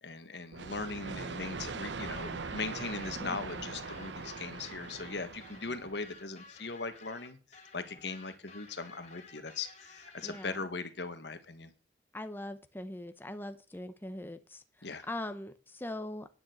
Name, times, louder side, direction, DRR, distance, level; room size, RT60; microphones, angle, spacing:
voice 1, 0.0-11.7 14.8-15.1, left 4 dB, 75° left, 10 dB, 1.4 m, -39 dB
sound 1, 0.5-6.2, right 4 dB, 85° right, 0.9 m, -41 dB
sound 2, 2.1-10.5, left 4 dB, 40° left, 3.1 m, -54 dB
voice 2, 10.2-10.6 12.1-14.6 15.1-16.3, left 1 dB, 10° left, 9 dB, 0.8 m, -41 dB
9.9 x 6.9 x 7.9 m, 0.35 s
head